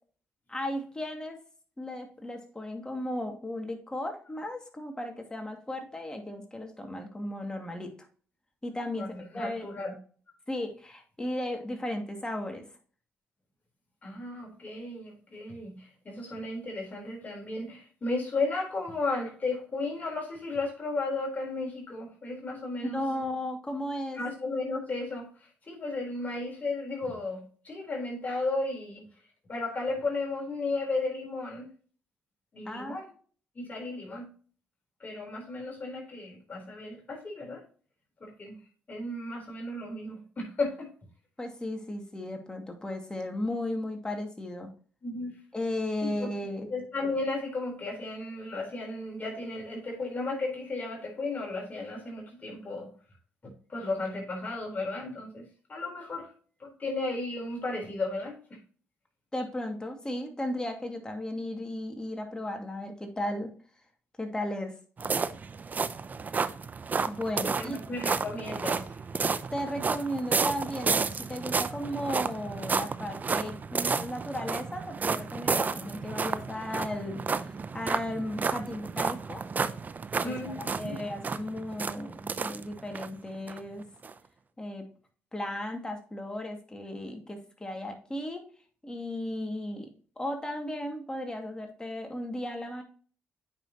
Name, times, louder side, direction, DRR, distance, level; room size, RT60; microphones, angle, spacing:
voice 1, 0.5-1.4 1.8-7.9 8.6-9.1 9.3-9.6 10.5-12.7 22.9-24.2 32.7-33.0 41.4-44.7 45.5-46.7 59.3-63.5 64.2-64.7 67.1-67.8 69.5-79.4 80.2-83.9 84.6-84.8 85.3-88.5 88.8-89.9 90.2-92.8, left 1 dB, 15° left, 3 dB, 2.3 m, -35 dB
voice 2, 9.0-9.9 14.0-23.0 24.2-29.1 29.5-31.7 32.5-33.1 33.5-34.3 35.0-37.6 38.2-38.5 38.9-40.9 45.0-45.4 46.0-46.3 46.7-52.9 53.4-56.3 56.6-58.4 67.6-69.0 80.2-81.0, left 2 dB, 35° left, -1 dB, 4.1 m, -34 dB
sound 1, 65.0-83.1 83.5-83.6 84.0-84.1, right 5 dB, 40° right, 0.6 m, -31 dB
8.9 x 6.0 x 3.0 m, 0.42 s
supercardioid pair, 70°, 4 cm